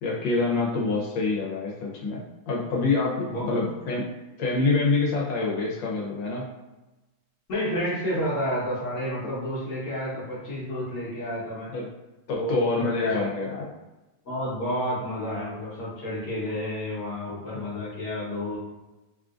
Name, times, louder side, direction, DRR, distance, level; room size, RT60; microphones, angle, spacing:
voice 1, 0.0-4.0 4.4-6.5 11.7-11.9 12.3-13.6, left 3 dB, 80° left, -2 dB, 1.5 m, -26 dB
voice 2, 3.3-3.6 7.5-11.7 12.3-13.2 14.2-18.6, equal, 45° left, -7 dB, 1.3 m, -30 dB
3.8 x 2.4 x 2.4 m, 1.1 s
omnidirectional pair, 2.0 m